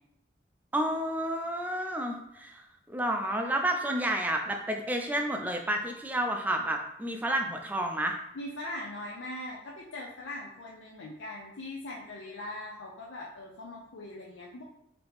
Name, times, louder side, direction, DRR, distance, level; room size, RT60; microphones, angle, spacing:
voice 1, 0.7-8.2, right 1 dB, 10° right, 3 dB, 0.4 m, -30 dB
voice 2, 8.3-14.6, left 1 dB, 80° left, -3 dB, 0.5 m, -41 dB
3.9 x 2.8 x 3.5 m, 0.77 s
head